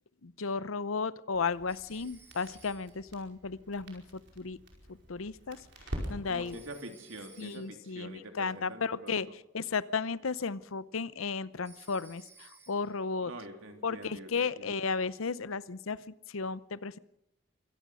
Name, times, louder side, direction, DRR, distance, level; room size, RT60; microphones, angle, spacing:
voice 1, 0.2-4.0 4.4-4.6 4.9-5.6 6.1-6.6 7.4-9.3 9.5-13.3 13.8-17.0, left 5 dB, 85° left, 18 dB, 0.7 m, -34 dB
Crackle, 1.3-6.6, equal, 55° right, 5.0 m, -45 dB
Telephone, 1.7-3.1 6.5-7.9 11.7-13.1, right 6 dB, 10° right, 1.7 m, -57 dB
voice 2, 6.3-9.2 13.2-14.9, right 1 dB, 80° right, 5 dB, 3.2 m, -45 dB
24.0 x 17.5 x 6.3 m, 0.81 s
head